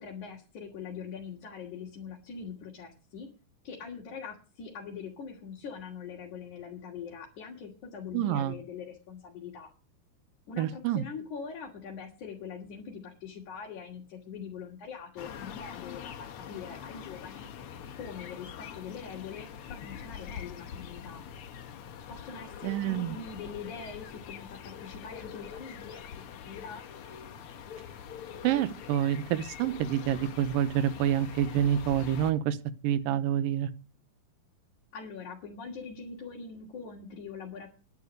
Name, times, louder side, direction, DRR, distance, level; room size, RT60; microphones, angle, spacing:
voice 1, 0.0-3.3 3.6-9.7 10.5-17.5 17.9-21.2 22.1-26.0 26.5-26.9 34.9-37.7, left 6 dB, 60° left, -2 dB, 3.6 m, -43 dB
voice 2, 8.1-8.5 10.6-11.0 22.6-23.2 28.4-32.6 32.8-33.7, right 11 dB, 80° right, 13 dB, 2.5 m, -27 dB
sound 1, 15.2-32.3, left 8 dB, 90° left, 1.2 m, -44 dB
11.0 x 10.5 x 6.5 m, 0.34 s
omnidirectional pair, 4.1 m